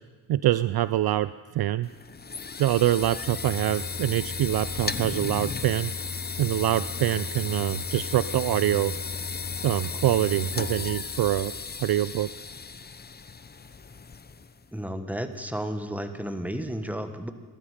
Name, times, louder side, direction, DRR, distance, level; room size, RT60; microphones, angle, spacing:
voice 1, 0.3-1.9 2.6-5.9 6.4-8.9 9.6-11.5 11.8-12.3, right 14 dB, 55° right, 15 dB, 0.5 m, -25 dB
sound 1, 1.8-14.6, left 5 dB, 20° left, 0.7 m, -34 dB
voice 2, 14.7-17.3, equal, 5° right, 8 dB, 1.5 m, -32 dB
19.0 x 13.0 x 5.0 m, 1.4 s
supercardioid pair, 60°, 46 cm